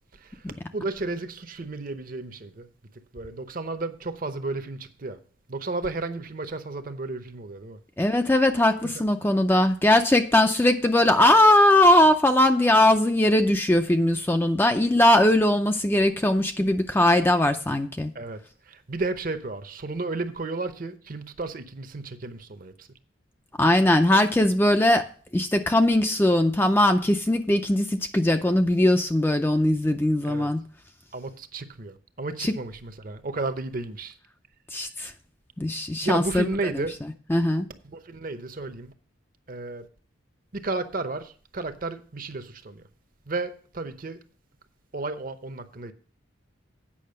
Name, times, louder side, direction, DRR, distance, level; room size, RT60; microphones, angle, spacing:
voice 1, 0.1-2.7 3.1-5.2 5.5-7.8 8.8-8.9 18.1-18.4 18.6-22.9 30.3-30.5 31.1-34.2 36.0-37.0 37.8-38.9 39.5-39.9 40.5-42.8 43.3-44.2 44.9-45.9, right 3 dB, 45° right, 0.7 m, -33 dB
voice 2, 8.0-18.1 23.6-25.1 25.3-30.6 32.4-32.5 34.7-35.1 35.6-36.5 37.3-37.7, left 1 dB, 10° left, 0.4 m, -20 dB
8.6 x 5.7 x 6.6 m
head